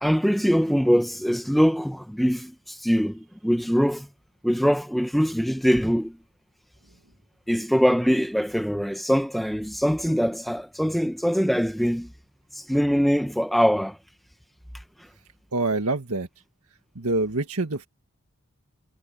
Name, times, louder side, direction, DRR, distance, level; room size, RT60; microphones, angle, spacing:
voice 1, 0.0-2.6 2.8-4.1 4.4-6.2 7.5-12.1 12.7-13.9, equal, ahead, 1.2 m, -22 dB
voice 2, 15.5-16.3 17.0-17.9, right 2 dB, 90° right, 1.7 m, -26 dB
head